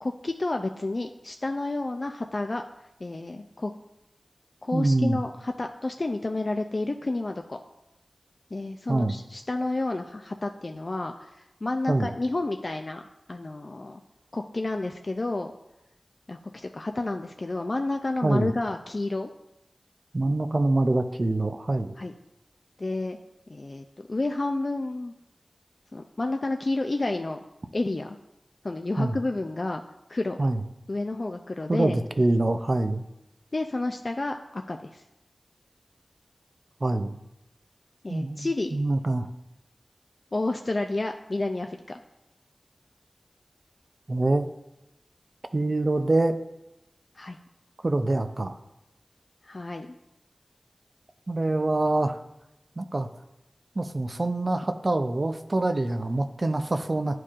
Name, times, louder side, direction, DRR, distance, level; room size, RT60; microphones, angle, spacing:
voice 1, 0.0-2.6 3.0-3.7 4.6-7.6 8.5-11.3 11.6-13.0 13.3-14.0 14.3-15.5 16.3-19.3 22.0-22.1 22.8-23.2 23.5-25.1 25.9-27.4 27.7-28.2 28.6-29.8 30.1-30.4 30.9-32.0 33.5-35.0 38.0-38.8 40.3-42.0 47.2-47.4 49.4-50.0, left 2 dB, 50° left, 4 dB, 0.3 m, -30 dB
voice 2, 4.7-5.2 8.9-9.2 11.9-12.1 18.2-18.5 20.1-21.9 29.0-29.1 30.4-30.6 31.7-33.0 36.8-37.1 38.1-39.3 44.1-44.5 45.5-46.4 47.8-48.6 51.3-52.2 52.8-53.1 53.8-57.2, right 2 dB, 50° right, 8 dB, 0.4 m, -25 dB
10.0 x 4.5 x 2.4 m, 0.91 s
wide cardioid pair, 50°, 0 cm